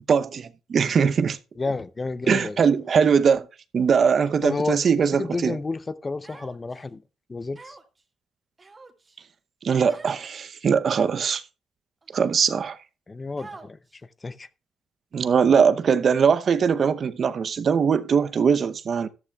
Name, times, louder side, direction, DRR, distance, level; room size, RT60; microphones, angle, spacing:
voice 1, 0.1-1.4 2.3-3.5 3.7-5.6 9.6-11.4 12.1-12.8 15.1-19.1, right 6 dB, 50° right, 0.7 m, -21 dB
voice 2, 1.6-2.6 4.4-4.8 5.2-7.0 7.3-7.8 13.1-13.8 14.2-14.5, left 3 dB, 25° left, 0.6 m, -30 dB
Human voice, 6.2-6.8 7.5-8.0 8.6-9.2 9.9-10.2 10.9-11.3 12.0-12.1 13.4-14.0, right 3 dB, 30° right, 1.9 m, -45 dB
13.5 x 12.0 x 2.3 m
cardioid pair, 90°, 0 cm